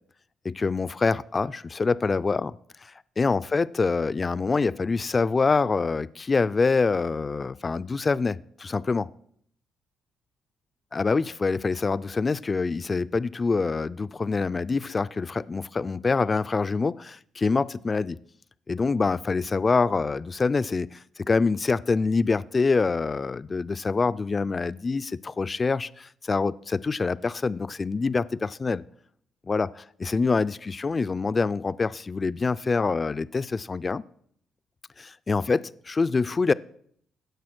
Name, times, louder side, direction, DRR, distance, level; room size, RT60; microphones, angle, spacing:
voice 1, 0.4-2.5 2.8-9.1 10.9-18.2 18.7-28.8 29.5-29.7 30.0-34.0 35.0-36.5, left 4 dB, 30° left, 0.4 m, -25 dB
16.0 x 6.7 x 6.1 m
cardioid pair, 90°, 0 cm